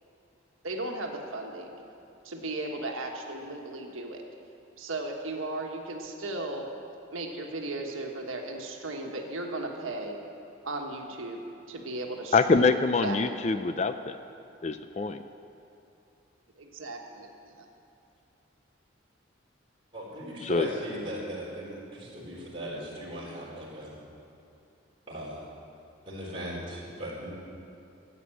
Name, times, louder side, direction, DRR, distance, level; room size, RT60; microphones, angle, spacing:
voice 1, 0.6-1.7 2.2-4.2 4.8-6.7 7.1-10.2 10.6-11.4 11.7-12.7 13.0-13.6 16.6-17.7, right 2 dB, 90° right, 1 dB, 1.4 m, -36 dB
voice 2, 12.3-14.2 14.6-15.2 20.4-20.7, left 4 dB, 35° left, 10 dB, 0.4 m, -25 dB
voice 3, 19.9-24.0 25.1-25.4 26.1-27.3, equal, 25° right, -5 dB, 3.8 m, -38 dB
14.5 x 8.2 x 8.8 m, 2.6 s
head